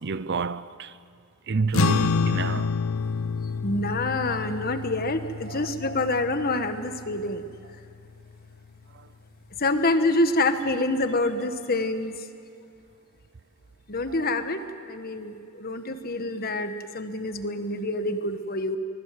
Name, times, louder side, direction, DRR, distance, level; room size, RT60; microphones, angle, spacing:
voice 1, 0.0-0.9 1.5-2.7 5.5-5.7, right 4 dB, 50° right, 0.6 m, -28 dB
sound 1, 1.7-8.4, left 5 dB, 65° left, 0.6 m, -28 dB
voice 2, 3.6-7.4 9.6-12.1 13.9-18.8, left 2 dB, 45° left, 1.4 m, -27 dB
24.5 x 22.0 x 7.6 m
head